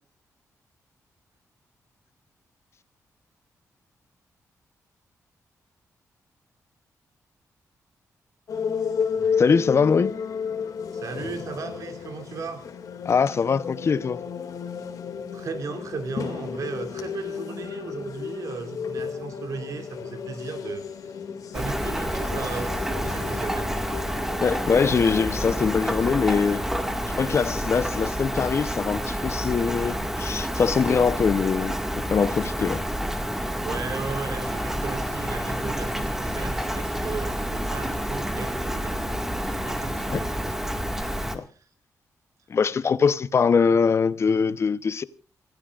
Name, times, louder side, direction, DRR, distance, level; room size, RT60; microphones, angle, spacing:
sound 1, 8.5-27.6, left 6 dB, 75° left, 2.4 m, -33 dB
voice 1, 9.4-10.1 13.0-14.2 24.4-26.6 27.2-32.8 40.1-40.2 41.3-41.4 42.5-45.0, left 5 dB, 50° left, 0.9 m, -22 dB
voice 2, 10.9-12.7 15.3-20.8 21.5-23.8 33.6-39.2 39.6-40.7 41.0-41.6, right 4 dB, 70° right, 3.2 m, -36 dB
Rain, 21.5-41.4, equal, 5° right, 1.9 m, -29 dB
sound 2, 32.3-41.4, left 2 dB, 20° left, 1.5 m, -43 dB
28.5 x 15.5 x 2.5 m
cardioid pair, 90°, 6 cm